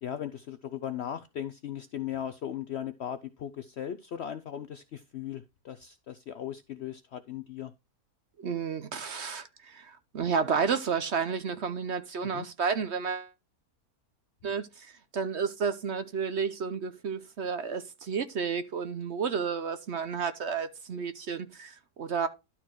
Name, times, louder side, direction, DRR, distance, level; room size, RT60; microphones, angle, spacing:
voice 1, 0.0-7.7 12.3-12.5, left 10 dB, 65° left, 0.6 m, -38 dB
voice 2, 8.4-13.3 14.4-22.3, right 6 dB, 55° right, 0.9 m, -31 dB
12.0 x 4.3 x 4.5 m
omnidirectional pair, 1.6 m